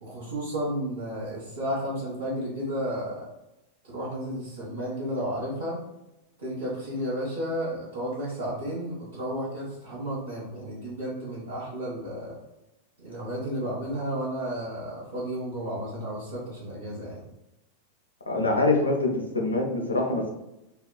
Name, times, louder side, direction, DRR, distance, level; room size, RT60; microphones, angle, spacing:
voice 1, 0.0-3.2 3.9-5.8 6.4-12.3 13.0-17.2, equal, 70° right, -9 dB, 0.9 m, -32 dB
voice 2, 18.3-20.3, left 2 dB, 75° left, 0 dB, 0.5 m, -24 dB
2.7 x 2.2 x 2.2 m, 0.91 s
figure-of-eight pair, 90°, 0 cm